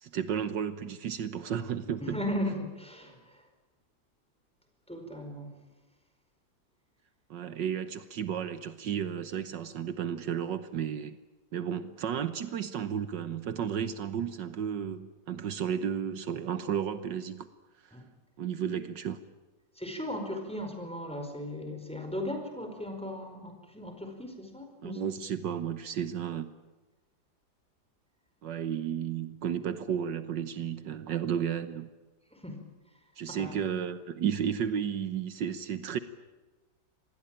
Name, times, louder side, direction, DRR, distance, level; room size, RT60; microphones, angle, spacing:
voice 1, 0.0-2.2 7.3-11.2 11.5-17.5 17.8-18.0 18.4-19.2 24.8-26.5 28.4-31.9 33.2-36.0, right 8 dB, 75° right, 11 dB, 1.7 m, -33 dB
voice 2, 2.0-3.4 4.9-5.5 17.9-18.1 19.8-25.0 32.3-32.6 33.3-33.5, left 1 dB, 5° left, 4 dB, 4.8 m, -37 dB
26.5 x 20.5 x 9.0 m, 1.2 s
omnidirectional pair, 2.0 m